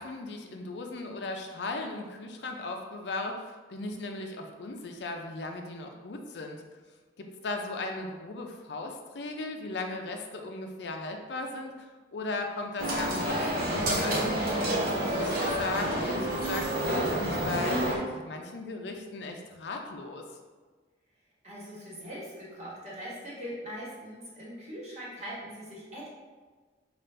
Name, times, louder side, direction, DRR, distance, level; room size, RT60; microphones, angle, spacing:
voice 1, 0.0-6.6 7.2-14.2 14.6-20.2, left 2 dB, 65° left, 3 dB, 0.5 m, -37 dB
sound 1, 12.8-18.0, right 1 dB, 55° right, 1.0 m, -28 dB
voice 2, 21.4-26.1, equal, 40° right, -7 dB, 1.4 m, -41 dB
5.3 x 2.4 x 3.2 m, 1.4 s
head